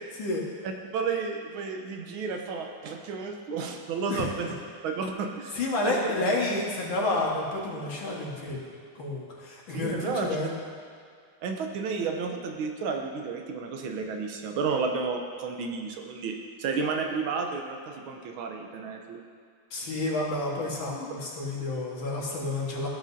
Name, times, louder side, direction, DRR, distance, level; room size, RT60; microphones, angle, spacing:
voice 1, 0.1-0.4 4.1-4.2 5.5-8.7 9.0-10.5 19.7-22.9, left 2 dB, 70° left, -3 dB, 2.4 m, -30 dB
voice 2, 0.6-4.6 4.8-5.6 5.8-6.4 9.7-10.5 11.4-19.2, right 5 dB, 85° right, 3 dB, 1.7 m, -32 dB
15.5 x 7.5 x 2.7 m, 2.2 s
omnidirectional pair, 2.2 m